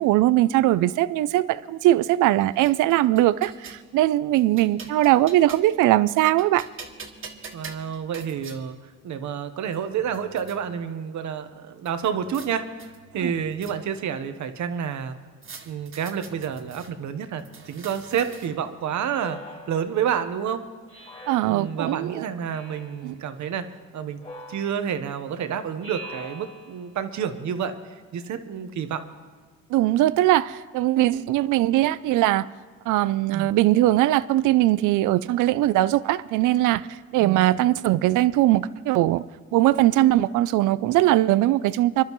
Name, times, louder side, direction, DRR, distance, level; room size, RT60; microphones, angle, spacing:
voice 1, 0.0-6.7 13.2-13.3 21.3-22.3 23.0-23.2 29.7-32.5 32.9-39.2 39.5-42.0, right 15 dB, 85° right, 0.5 m, -20 dB
sound 1, 2.1-3.8 4.3-5.8 6.2-8.6 9.4-9.5 9.7-10.6 11.8-12.5 12.8-14.1 15.4-16.9 17.4-18.7, right 4 dB, 45° right, 1.8 m, -44 dB
voice 2, 7.5-8.8 9.0-15.2 15.7-19.4 19.7-20.6 21.4-23.7 23.9-24.2 24.5-27.8 28.1-29.0 33.3-33.5 37.2-37.5, right 8 dB, 70° right, 1.1 m, -29 dB
Speech synthesizer, 19.1-20.2 20.9-21.9 22.5-23.2 24.2-25.1 25.8-27.0, equal, 25° left, 4.0 m, -43 dB
25.5 x 11.5 x 3.1 m
cardioid pair, 90°, 30 cm